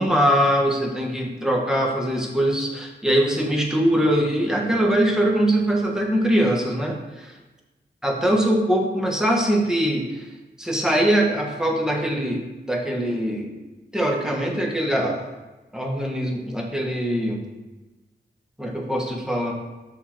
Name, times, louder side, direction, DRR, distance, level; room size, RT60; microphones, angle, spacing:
voice 1, 0.0-7.0 8.0-10.2 10.6-13.5 13.9-15.3 15.7-17.4 18.6-19.5, right 1 dB, 5° right, -1 dB, 1.3 m, -22 dB
7.4 x 2.9 x 5.9 m, 1.1 s
cardioid pair, 60°, 18 cm